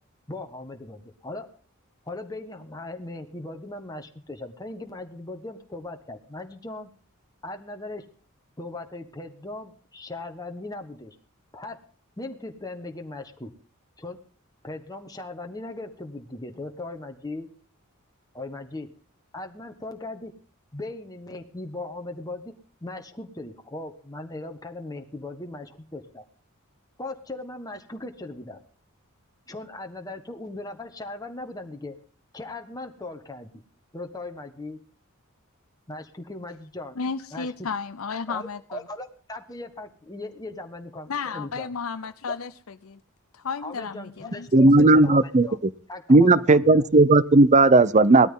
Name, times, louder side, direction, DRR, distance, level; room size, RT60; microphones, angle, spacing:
voice 1, 0.3-1.5 2.1-6.9 7.4-8.0 8.6-11.2 11.5-11.8 12.2-13.5 14.0-14.2 14.6-17.5 18.3-18.9 19.3-20.3 20.7-22.5 22.8-26.2 27.0-28.6 29.5-32.0 32.3-33.5 33.9-34.8 35.9-37.0 37.3-37.5 38.3-41.7 42.3-42.4 43.6-45.6 45.9-46.9, left 2 dB, 20° left, 1.3 m, -38 dB
voice 2, 37.0-38.8 41.1-42.5 42.8-43.0 43.3-44.5, left 5 dB, 80° left, 0.7 m, -33 dB
voice 3, 44.5-45.5 46.1-48.3, right 2 dB, 35° right, 0.6 m, -15 dB
18.5 x 13.0 x 3.8 m
head